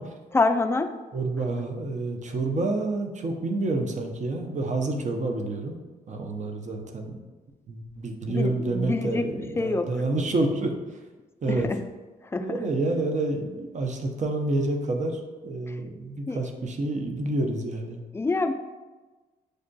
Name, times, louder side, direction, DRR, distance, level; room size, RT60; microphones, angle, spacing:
voice 1, 0.3-1.0 8.3-9.3 9.6-9.9 11.5-11.8 12.3-12.6 16.3-16.4 18.1-18.5, left 3 dB, 15° left, 8 dB, 0.3 m, -25 dB
voice 2, 1.1-5.8 6.1-7.2 7.7-11.0 11.4-11.7 12.4-18.0, right 2 dB, 45° right, 3 dB, 0.6 m, -28 dB
6.3 x 2.4 x 2.2 m, 1.3 s
supercardioid pair, 60°, 17 cm